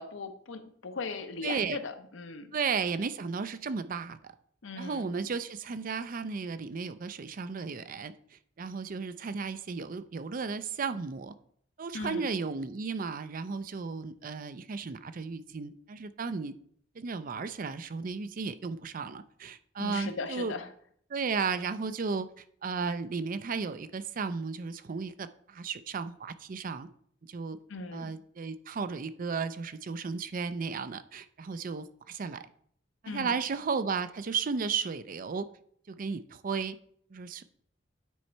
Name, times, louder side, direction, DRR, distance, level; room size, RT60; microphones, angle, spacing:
voice 1, 0.0-2.5 4.6-5.1 11.9-12.3 19.8-20.7 27.7-28.1 33.0-33.4, left 4 dB, 85° left, 8 dB, 0.8 m, -38 dB
voice 2, 1.4-1.8 2.5-4.3 4.8-11.3 11.8-16.5 16.9-20.5 21.1-26.9 27.2-27.6 27.9-32.5 33.0-35.5 35.9-36.8 37.1-37.4, right 5 dB, 45° right, 12 dB, 0.4 m, -34 dB
9.3 x 4.2 x 4.5 m, 0.63 s
head